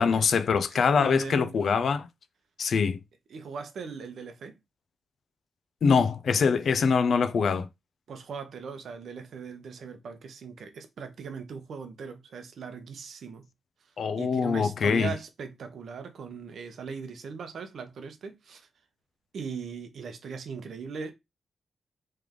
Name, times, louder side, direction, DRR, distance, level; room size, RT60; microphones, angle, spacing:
voice 1, 0.0-2.1 2.6-3.0 5.8-7.7 14.0-15.1, left 5 dB, 70° left, 0.5 m, -24 dB
voice 2, 0.7-1.6 3.3-4.6 8.1-13.5 14.2-18.7 19.3-21.1, right 5 dB, 75° right, 0.8 m, -39 dB
3.3 x 3.3 x 3.6 m
cardioid pair, 55°, 0 cm